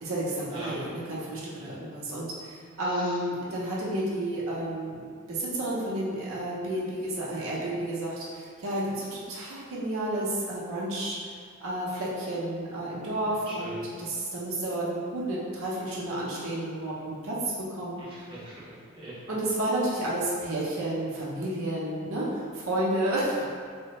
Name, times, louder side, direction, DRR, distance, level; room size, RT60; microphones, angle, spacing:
voice 1, 0.0-5.0 5.3-18.3 19.3-23.4, right 1 dB, 75° right, -6 dB, 0.7 m, -31 dB
voice 2, 0.5-0.8 2.9-3.2 13.2-13.8 18.0-19.2, right 1 dB, 25° right, -9 dB, 0.7 m, -43 dB
3.4 x 2.1 x 2.8 m, 2.1 s
head